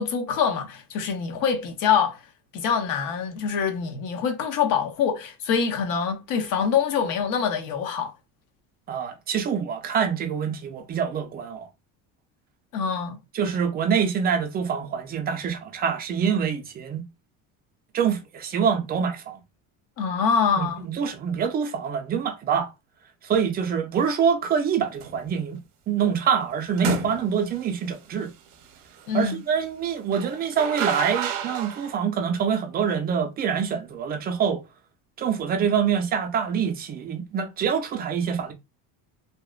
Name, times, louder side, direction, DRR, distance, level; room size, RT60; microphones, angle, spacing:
voice 1, 0.0-2.2 2.5-8.1 12.7-13.2 20.0-20.8 29.1-29.4, left 6 dB, 60° left, 0.8 m, -25 dB
voice 2, 8.9-11.7 13.3-17.1 17.9-19.4 20.6-22.7 23.2-25.6 25.9-28.3 29.1-34.6 35.2-38.5, right 7 dB, 25° right, 0.5 m, -25 dB
sound 1, 25.0-25.3 26.8-27.6 30.1-31.9, right 5 dB, 65° right, 0.7 m, -29 dB
2.8 x 2.1 x 2.3 m
cardioid pair, 145°, 37 cm